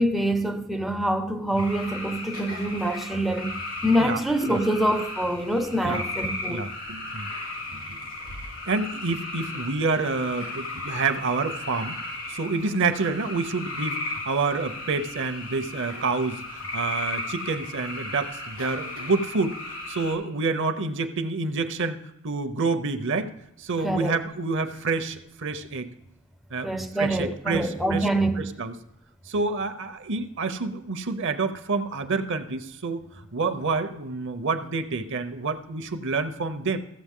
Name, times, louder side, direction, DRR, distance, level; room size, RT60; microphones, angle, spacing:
voice 1, 0.0-6.7 23.8-24.2 26.6-28.5, right 1 dB, ahead, 0.4 m, -25 dB
sound 1, 1.5-20.1, left 2 dB, 90° left, 3.5 m, -36 dB
voice 2, 6.4-7.3 7.7-8.0 8.7-19.6 19.9-23.3 23.6-25.9 26.5-26.7 27.0-28.0 28.4-28.7 29.3-33.0 33.3-36.8, right 4 dB, 55° right, 0.7 m, -28 dB
15.0 x 7.6 x 3.7 m
head